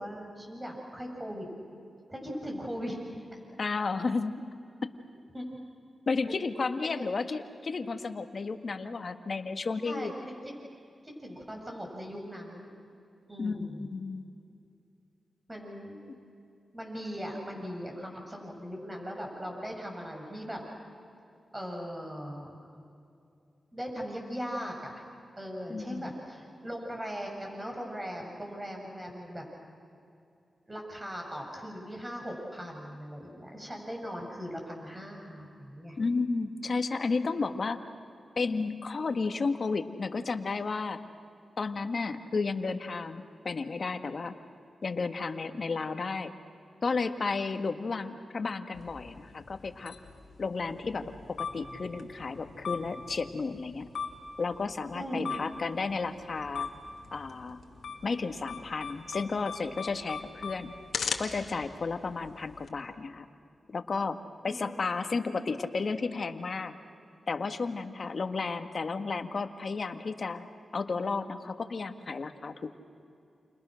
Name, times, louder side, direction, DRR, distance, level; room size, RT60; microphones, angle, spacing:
voice 1, 0.0-1.5 2.1-3.2 5.3-5.5 6.6-6.9 9.8-10.1 11.2-12.7 13.3-13.9 15.5-16.0 16.7-20.6 21.5-22.5 23.7-25.0 25.4-29.4 30.7-36.0 54.9-55.3 64.4-64.7, equal, 20° right, 0 dB, 7.8 m, -39 dB
voice 2, 3.6-4.4 4.8-4.9 6.1-10.1 13.4-14.3 25.7-26.1 36.0-37.9 38.4-41.0 41.6-44.3 44.8-46.3 46.8-49.9 50.4-53.9 54.4-56.7 57.1-57.6 58.0-60.7 61.2-63.3 63.7-66.8 67.3-70.5 70.7-72.7, left 4 dB, 60° left, 8 dB, 1.7 m, -33 dB
sound 1, 48.7-62.7, left 5 dB, 80° left, 2.1 m, -41 dB
30.0 x 29.5 x 6.5 m, 2.6 s
cardioid pair, 50°, 0 cm